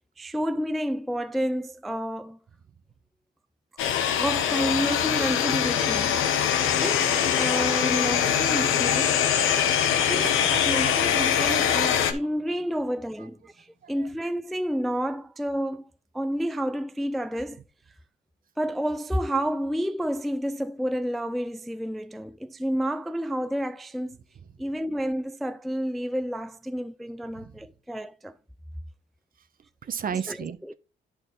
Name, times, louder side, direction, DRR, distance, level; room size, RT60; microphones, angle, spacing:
voice 1, 0.2-2.4 4.2-6.3 6.8-9.2 10.1-15.9 16.1-17.6 18.6-24.2 24.6-28.3 30.3-30.7, equal, ahead, 0.3 m, -30 dB
sound 1, 3.8-12.1, left 9 dB, 90° left, 1.0 m, -23 dB
sound 2, 9.9-13.3 13.6-13.7, right 5 dB, 80° right, 2.4 m, -42 dB
voice 2, 29.8-30.7, right 7 dB, 45° right, 0.8 m, -33 dB
10.5 x 4.6 x 3.8 m
cardioid pair, 90°, 20 cm